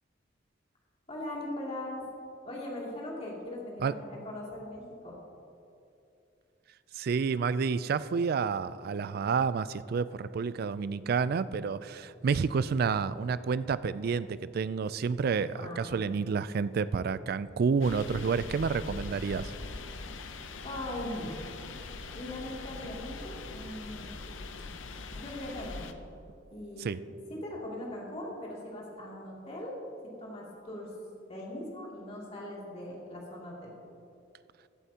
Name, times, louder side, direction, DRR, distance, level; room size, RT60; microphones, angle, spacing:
voice 1, 1.1-2.0 2.4-5.2 15.5-16.0 20.6-21.4 22.1-24.1 25.1-25.9 26.5-27.0 27.3-29.7 30.2-30.9 31.3-33.7, left 1 dB, 35° left, -5 dB, 2.6 m, -40 dB
voice 2, 6.9-19.5 26.8-27.0, right 5 dB, 50° right, 16 dB, 0.3 m, -29 dB
sound 1, 17.8-25.9, left 3 dB, 80° left, 0.7 m, -42 dB
15.5 x 11.0 x 2.9 m, 2.7 s
head